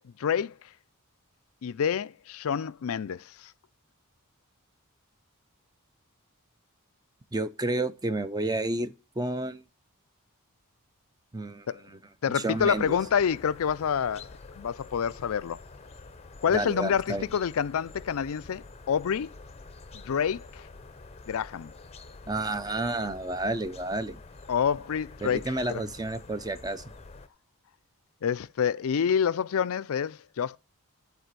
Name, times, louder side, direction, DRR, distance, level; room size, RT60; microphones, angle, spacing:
voice 1, 0.2-0.5 1.6-3.2 11.7-11.8 12.2-14.3 14.6-15.6 16.4-19.3 19.9-20.6 21.3-21.7 24.5-25.8 28.2-30.6, left 7 dB, 65° left, 0.4 m, -27 dB
voice 2, 7.3-9.6 11.3-12.0 12.3-13.0 16.5-17.3 22.3-24.2 25.2-26.8, right 2 dB, 15° right, 0.6 m, -31 dB
sound 1, 12.6-27.3, left 3 dB, 30° left, 0.6 m, -48 dB
10.5 x 4.1 x 6.7 m
head